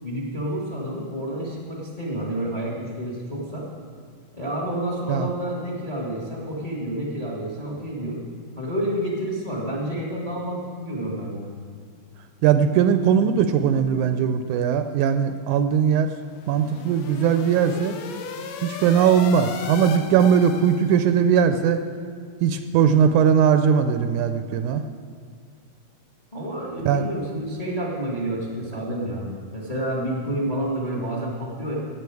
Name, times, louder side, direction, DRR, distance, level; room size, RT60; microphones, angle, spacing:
voice 1, 0.0-3.7 4.4-8.2 8.6-11.5 26.3-31.8, right 1 dB, 20° left, -2 dB, 1.2 m, -29 dB
voice 2, 12.4-16.1 16.5-18.0 18.6-21.8 22.4-24.8 26.9-27.0, right 7 dB, 80° right, 8 dB, 1.9 m, -19 dB
sound 1, 16.2-21.2, left 6 dB, 80° left, 2.4 m, -36 dB
16.0 x 8.1 x 4.8 m, 2.2 s
omnidirectional pair, 3.7 m